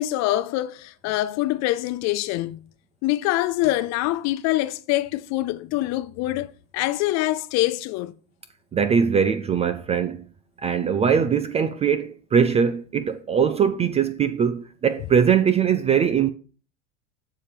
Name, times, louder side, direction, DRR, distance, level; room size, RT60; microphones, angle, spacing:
voice 1, 0.0-2.6 3.0-8.1, left 16 dB, 45° left, 0.6 m, -25 dB
voice 2, 8.7-10.2 10.6-16.3, right 7 dB, 20° right, 0.3 m, -21 dB
7.2 x 7.0 x 5.0 m
supercardioid pair, 130°, 39 cm